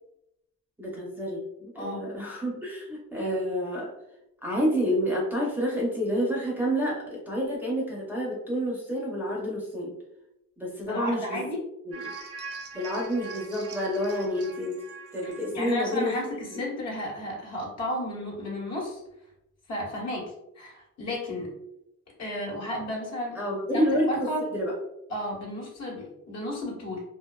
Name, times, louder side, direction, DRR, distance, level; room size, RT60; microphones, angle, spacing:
voice 1, 0.8-3.9 4.4-9.9 10.6-11.4 11.9-12.1 12.7-14.8 15.1-16.1 16.5-16.6 23.3-24.3 24.5-24.7, equal, 5° right, -5 dB, 0.6 m, -29 dB
voice 2, 1.7-2.1 10.8-11.6 15.2-19.0 19.7-21.5 22.2-23.3 23.7-24.4 25.1-27.0, left 1 dB, 60° left, -4 dB, 1.1 m, -33 dB
sound 1, 11.9-16.6 17.0-17.1, right 4 dB, 55° right, 0.6 m, -43 dB
2.5 x 2.2 x 2.2 m, 0.85 s
cardioid pair, 105°, 30 cm